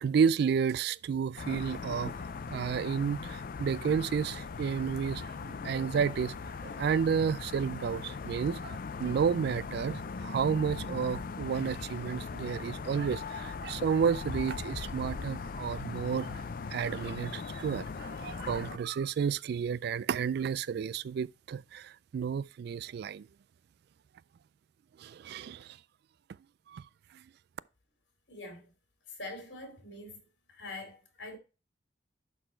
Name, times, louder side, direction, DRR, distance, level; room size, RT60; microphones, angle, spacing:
voice 1, 0.0-6.3 6.6-23.3 25.0-25.8 26.7-26.9 27.1-27.2, right 6 dB, 60° right, 0.3 m, -31 dB
sound 1, 1.4-18.8, left 5 dB, 50° left, 0.4 m, -39 dB
voice 2, 28.3-28.7 29.1-30.2 30.5-31.4, left 2 dB, 75° left, 2.8 m, -44 dB
11.0 x 4.1 x 4.4 m
head